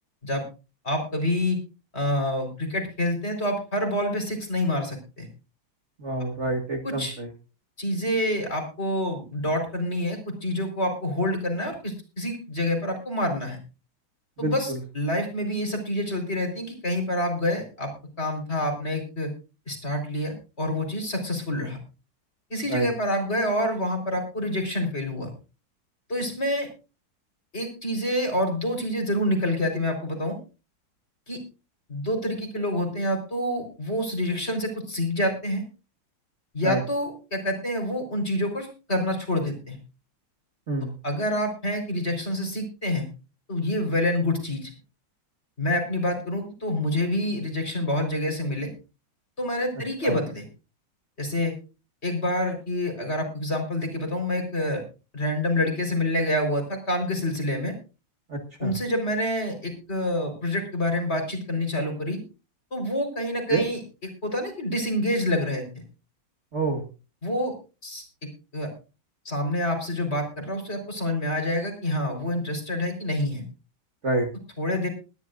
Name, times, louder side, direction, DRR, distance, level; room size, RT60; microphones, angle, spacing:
voice 1, 0.8-1.6 1.9-5.3 6.8-7.2 7.8-13.6 14.4-17.9 18.2-19.3 19.7-21.8 22.5-25.3 26.1-26.7 27.5-30.4 31.3-31.4 31.9-35.6 36.5-39.8 41.0-43.1 43.5-44.7 45.6-48.7 49.4-50.5 51.2-51.5 52.0-54.8 55.1-57.7 58.6-62.2 62.7-63.8 64.2-65.6 67.2-67.6 67.8-68.0 68.5-68.7 69.2-73.4 74.6-74.9, left 1 dB, 30° left, 5 dB, 4.7 m, -27 dB
voice 2, 6.0-7.3 14.4-14.8 22.7-22.9 36.6-36.8 40.7-40.9 50.0-50.2 58.3-58.7 63.5-63.6 66.5-66.8 74.0-74.3, right 2 dB, 40° right, 3 dB, 1.9 m, -27 dB
20.5 x 12.5 x 2.6 m, 0.32 s
omnidirectional pair, 2.1 m